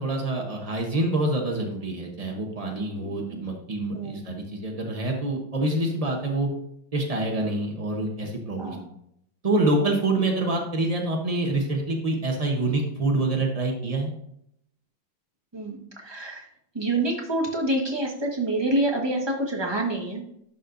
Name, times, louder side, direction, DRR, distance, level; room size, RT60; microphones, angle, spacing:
voice 1, 0.0-6.5 6.9-8.8 9.4-14.1, right 2 dB, 80° right, 1 dB, 0.3 m, -26 dB
voice 2, 2.8-3.5 3.9-4.5 8.6-8.9 15.5-16.5 16.7-20.2, right 1 dB, 15° right, 0 dB, 1.0 m, -28 dB
11.0 x 5.4 x 2.6 m, 0.73 s
omnidirectional pair, 2.3 m